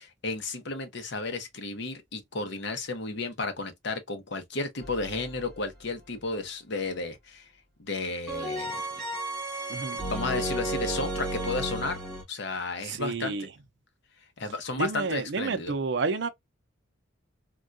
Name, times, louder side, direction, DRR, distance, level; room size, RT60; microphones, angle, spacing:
voice 1, 0.0-7.4 7.8-8.8 10.1-12.0 12.3-13.4 14.4-15.7, left 3 dB, 55° left, 0.7 m, -33 dB
sound 1, 4.8-5.6 8.3-12.2, right 1 dB, ahead, 1.4 m, -33 dB
voice 2, 9.7-10.0 12.8-13.5 14.8-16.3, right 4 dB, 60° right, 0.5 m, -30 dB
3.5 x 2.3 x 2.5 m
head